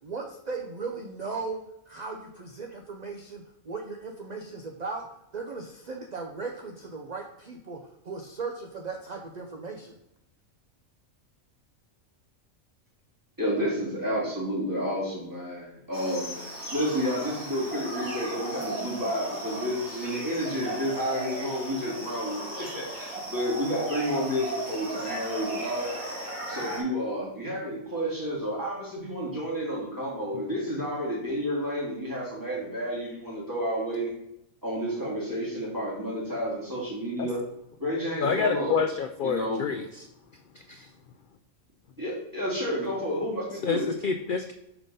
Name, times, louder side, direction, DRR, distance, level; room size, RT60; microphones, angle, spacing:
voice 1, 0.0-5.1 5.3-7.8 8.0-10.0, right 4 dB, 45° right, 2 dB, 0.5 m, -37 dB
voice 2, 13.4-16.3 16.7-26.0 26.5-34.1 34.6-37.4 37.8-38.8 39.2-39.6 42.0-43.9, equal, 15° right, -5 dB, 1.9 m, -30 dB
sound 1, 15.9-26.8, right 1 dB, 70° right, 3.4 m, -36 dB
voice 3, 38.2-40.1 40.7-40.9 43.6-44.5, left 6 dB, 85° left, 6 dB, 0.4 m, -28 dB
5.8 x 3.7 x 5.3 m, 0.81 s
omnidirectional pair, 1.4 m